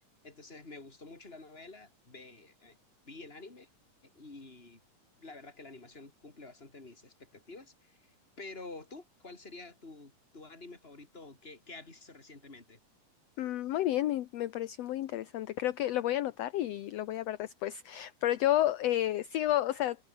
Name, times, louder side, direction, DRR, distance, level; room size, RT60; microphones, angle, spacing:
voice 1, 0.2-2.8 3.0-3.7 4.0-4.8 5.2-12.8, left 3 dB, 15° left, 3.9 m, -49 dB
voice 2, 13.4-20.0, left 13 dB, 65° left, 1.8 m, -31 dB
omnidirectional pair, 3.7 m